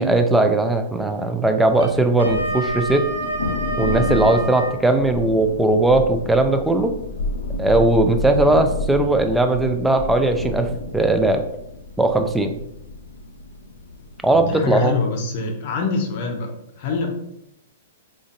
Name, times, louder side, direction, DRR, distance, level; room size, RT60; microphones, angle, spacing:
voice 1, 0.0-3.0 3.8-6.9 7.6-11.4 12.0-12.6 14.2-14.9, right 2 dB, 5° right, 6 dB, 0.3 m, -18 dB
Thunder, 1.7-14.9, left 2 dB, 90° left, 0.5 m, -30 dB
Wind instrument woodwind instrument, 1.7-4.8, right 1 dB, 80° right, 0.7 m, -28 dB
voice 2, 14.3-17.1, left 4 dB, 55° left, 4 dB, 0.7 m, -25 dB
3.7 x 2.5 x 2.6 m, 0.81 s
hypercardioid pair, 130°, 0 cm